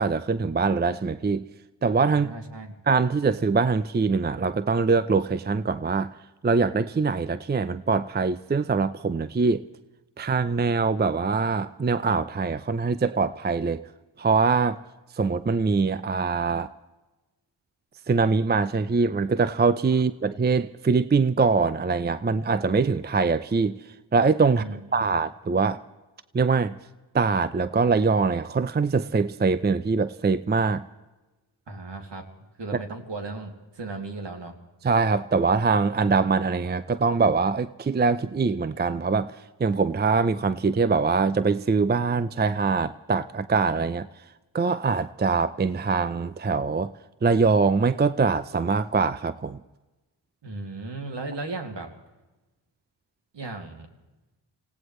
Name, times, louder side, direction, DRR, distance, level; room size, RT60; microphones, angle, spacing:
voice 1, 0.0-1.5 1.8-2.3 2.9-6.1 6.4-9.6 10.2-13.9 14.2-14.8 15.1-16.7 18.1-23.8 24.1-24.6 24.9-25.8 26.3-26.8 27.1-30.8 34.8-44.1 44.5-46.9 47.2-49.6, right 4 dB, 20° right, 0.6 m, -23 dB
voice 2, 2.1-2.7 24.5-25.1 31.7-32.3 32.6-34.5 50.4-51.9 53.3-53.9, right 3 dB, 65° right, 2.6 m, -36 dB
26.5 x 17.5 x 3.2 m
cardioid pair, 50°, 46 cm